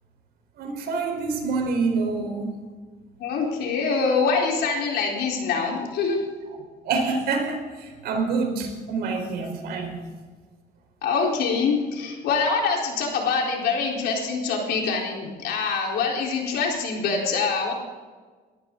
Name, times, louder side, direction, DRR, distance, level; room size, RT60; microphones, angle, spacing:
voice 1, 0.6-2.6 6.8-10.0, right 4 dB, 70° right, 3 dB, 4.5 m, -27 dB
voice 2, 3.2-6.3 11.0-17.7, left 4 dB, 75° left, 0 dB, 4.2 m, -24 dB
21.0 x 14.0 x 4.0 m, 1.4 s
cardioid pair, 110°, 17 cm